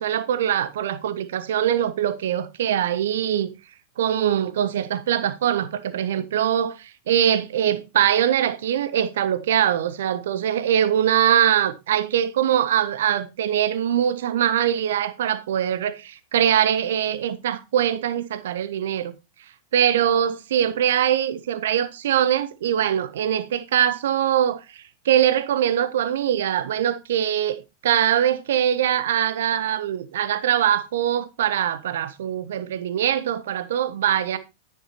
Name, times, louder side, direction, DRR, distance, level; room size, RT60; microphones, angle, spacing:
voice 1, 0.0-3.5 4.0-19.1 19.7-34.4, right 10 dB, 60° right, 0.7 m, -22 dB
10.0 x 9.4 x 2.8 m
figure-of-eight pair, 90°, 0 cm